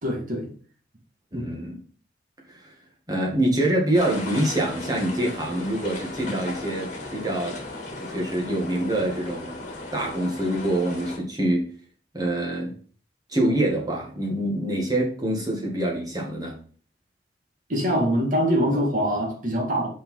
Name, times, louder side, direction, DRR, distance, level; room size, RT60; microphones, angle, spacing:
voice 1, 0.0-0.5 1.3-1.5 17.7-19.9, equal, 45° right, 2.0 m, -24 dB
voice 2, 1.3-1.8 2.5-2.7 3.1-7.6 8.0-9.6 9.9-11.7 12.1-12.7 13.3-16.6, right 1 dB, 20° right, 2.0 m, -25 dB
sound 1, 3.9-11.2, left 2 dB, 45° left, 2.1 m, -36 dB
5.8 x 5.0 x 5.6 m
head